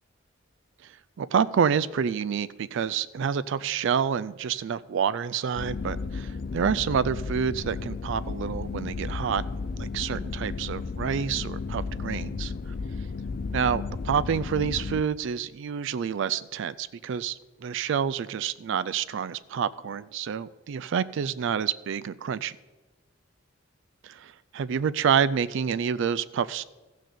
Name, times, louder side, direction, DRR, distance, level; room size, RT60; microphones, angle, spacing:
voice 1, 0.8-9.4 9.8-12.5 13.5-22.6 24.0-26.6, right 7 dB, 65° right, 15 dB, 0.4 m, -28 dB
sound 1, 5.6-15.0, left 4 dB, 50° left, 0.4 m, -33 dB
14.5 x 6.4 x 6.8 m, 1.1 s
head